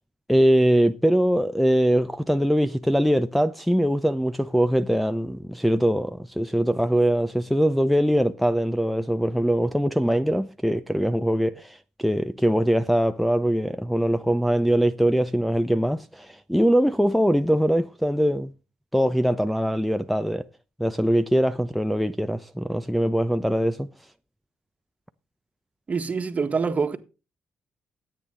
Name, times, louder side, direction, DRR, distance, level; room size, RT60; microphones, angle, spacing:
voice 1, 0.3-18.5 18.9-20.5 20.8-23.9, equal, ahead, 0.8 m, -22 dB
voice 2, 25.9-27.0, right 5 dB, 40° right, 1.7 m, -25 dB
13.5 x 9.1 x 3.9 m
supercardioid pair, 60°, 4 cm